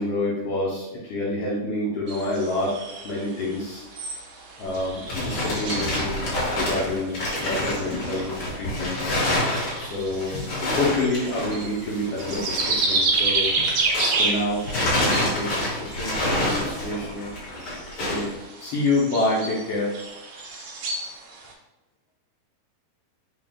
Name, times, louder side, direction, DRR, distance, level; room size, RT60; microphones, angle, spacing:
voice 1, 0.0-2.8 3.0-3.8 4.6-6.2 6.5-9.2 9.8-13.5 14.1-17.3 18.0-18.3 18.6-19.9, left 2 dB, 70° left, -6 dB, 1.5 m, -28 dB
sound 1, 2.1-21.5, right 3 dB, 80° right, 2.2 m, -31 dB
sound 2, 4.7-14.3 14.6-18.3, left 1 dB, 50° left, 1.8 m, -28 dB
5.1 x 2.4 x 3.6 m, 0.99 s
omnidirectional pair, 3.7 m